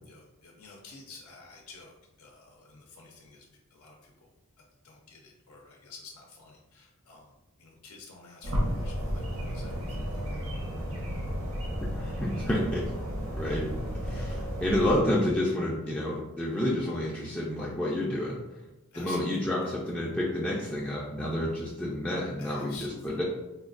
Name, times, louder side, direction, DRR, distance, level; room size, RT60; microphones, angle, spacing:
voice 1, 0.0-3.5 3.7-4.3 4.8-7.3 7.6-10.4 14.1-14.5 18.9-19.5 22.4-23.2, left 4 dB, 85° left, 0 dB, 0.5 m, -50 dB
sound 1, 8.4-15.0, equal, 65° right, 0.8 m, -33 dB
voice 2, 11.9-12.8 13.3-13.6 14.0-18.6 19.0-23.2, left 1 dB, 5° left, -5 dB, 0.3 m, -29 dB
4.3 x 2.3 x 2.4 m, 1.0 s
head